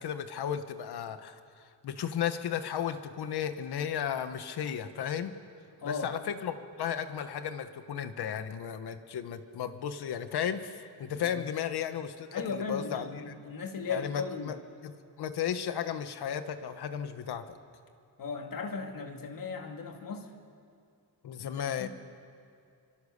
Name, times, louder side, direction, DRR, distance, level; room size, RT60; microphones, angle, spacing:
voice 1, 0.0-5.3 5.8-13.3 13.9-14.6 14.8-17.6 21.2-21.9, left 9 dB, 75° left, 9 dB, 1.5 m, -34 dB
voice 2, 5.8-6.1 11.2-11.4 12.3-14.6 18.2-20.3 21.7-21.9, left 4 dB, 60° left, 4 dB, 2.5 m, -37 dB
29.0 x 25.0 x 6.8 m, 2.4 s
wide cardioid pair, 145°, 39 cm